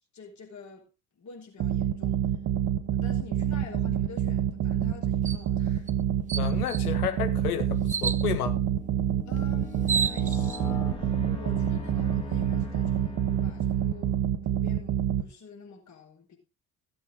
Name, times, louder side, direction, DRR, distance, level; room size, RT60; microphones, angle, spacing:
voice 1, 0.1-2.2 2.9-5.9 9.3-14.2 14.5-16.4, left 4 dB, 40° left, 4.7 m, -47 dB
sound 1, 1.6-15.2, right 9 dB, 45° right, 1.6 m, -27 dB
sound 2, 5.3-5.4 5.9-6.0 6.3-6.9 7.9-8.3 9.4-9.5 9.7-10.6, right 6 dB, 15° right, 0.6 m, -30 dB
voice 2, 6.3-8.5, left 9 dB, 75° left, 1.6 m, -31 dB
sound 3, 6.7-6.8 7.3-14.2, left 3 dB, 10° left, 3.2 m, -42 dB
16.5 x 7.8 x 3.8 m
figure-of-eight pair, 50°, 45 cm